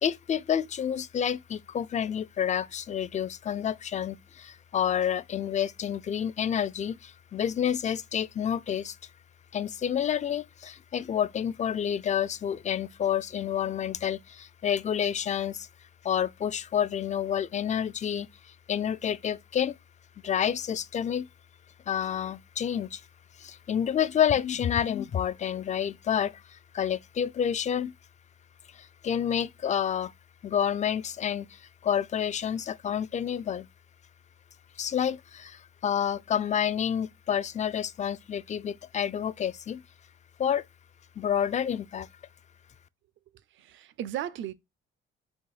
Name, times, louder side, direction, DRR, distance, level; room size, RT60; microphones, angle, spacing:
voice 1, 0.0-9.0 9.5-15.7 16.0-18.3 18.7-19.8 20.2-21.3 21.9-23.0 23.4-27.9 28.7-30.1 30.4-33.7 34.8-39.8 40.4-40.6 41.2-42.1, left 9 dB, 35° left, 0.4 m, -29 dB
voice 2, 43.5-44.5, right 11 dB, 75° right, 0.6 m, -35 dB
4.2 x 2.7 x 4.7 m
cardioid pair, 90°, 20 cm